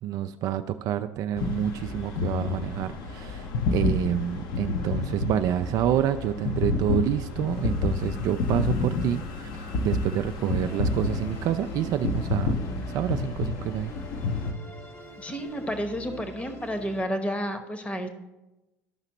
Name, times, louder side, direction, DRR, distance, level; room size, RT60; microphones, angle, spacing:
voice 1, 0.0-12.6 12.9-13.9, right 11 dB, 45° right, 9 dB, 0.3 m, -28 dB
sound 1, 1.4-14.5, left 3 dB, 50° left, 0.9 m, -29 dB
Musical instrument, 10.6-17.0, left 1 dB, 35° left, 1.1 m, -44 dB
voice 2, 15.2-18.1, equal, 15° left, 7 dB, 1.0 m, -31 dB
12.5 x 5.7 x 3.0 m, 1.0 s
figure-of-eight pair, 70°, 9 cm